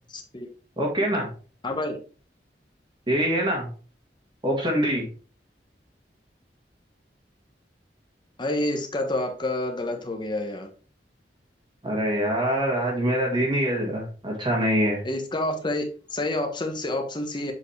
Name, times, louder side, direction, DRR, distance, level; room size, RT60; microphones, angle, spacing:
voice 1, 0.1-0.5 1.6-2.0 8.4-10.7 15.0-15.9 16.1-17.5, left 1 dB, 25° left, 4 dB, 1.2 m, -28 dB
voice 2, 0.8-1.3 3.1-3.7 4.4-5.1 11.8-15.0, equal, 25° right, -1 dB, 1.9 m, -24 dB
7.1 x 4.8 x 3.3 m, 0.38 s
head